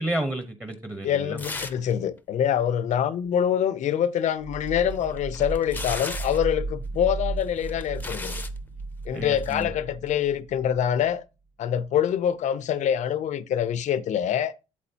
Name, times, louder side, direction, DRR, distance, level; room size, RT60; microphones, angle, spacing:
voice 1, 0.0-1.4 9.1-9.7, right 1 dB, 15° right, 1.0 m, -31 dB
voice 2, 1.0-8.4 9.1-11.2 11.6-14.5, left 9 dB, 70° left, 0.6 m, -25 dB
sound 1, 1.4-1.9 2.2-2.3 4.7-6.5 7.4-8.6 9.4-9.6, left 3 dB, 15° left, 0.6 m, -36 dB
sound 2, 4.4-11.1, right 3 dB, 60° right, 0.7 m, -35 dB
8.5 x 7.3 x 2.8 m
cardioid pair, 105°, 13 cm